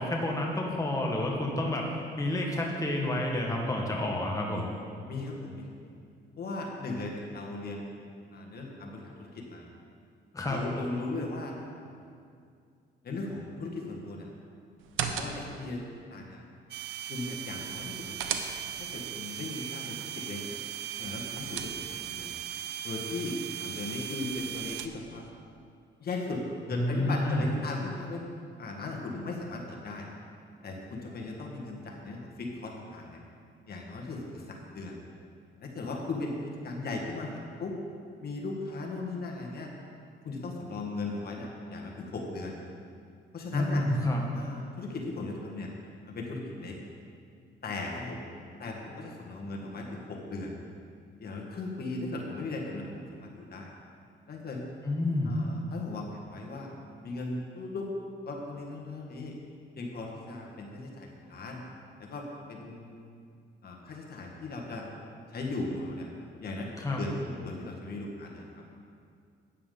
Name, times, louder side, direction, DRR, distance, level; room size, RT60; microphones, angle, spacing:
voice 1, 0.0-1.9 2.2-4.7 10.3-10.6 26.7-27.4 43.5-44.2 54.8-55.3 66.8-67.0, left 1 dB, 15° left, -1 dB, 1.6 m, -29 dB
voice 2, 5.1-5.9 6.4-7.9 8.3-9.7 10.5-11.9 13.0-14.3 15.0-15.8 16.1-16.4 17.1-18.4 18.9-20.6 21.0-22.3 22.8-25.3 26.0-26.4 26.7-28.2 28.6-30.1 30.6-33.2 33.7-35.0 35.6-36.3 36.6-37.3 37.6-37.7 38.2-39.7 40.2-42.6 43.3-43.8 44.3-45.7 46.1-46.8 47.6-48.2 48.6-50.6 51.2-53.7 54.3-54.6 55.3-56.7 57.0-57.9 58.3-59.3 59.8-61.6 62.0-63.1 63.6-64.9 65.3-66.1 66.4-66.7 67.0-68.5, left 2 dB, 50° left, -1 dB, 1.7 m, -37 dB
sound 1, 14.8-15.7 17.7-19.0 20.9-22.2 24.2-25.3, right 7 dB, 85° right, 0.8 m, -38 dB
sound 2, 16.7-24.9, right 11 dB, 60° right, 0.4 m, -38 dB
12.0 x 9.3 x 3.9 m, 2.3 s
cardioid pair, 90°, 20 cm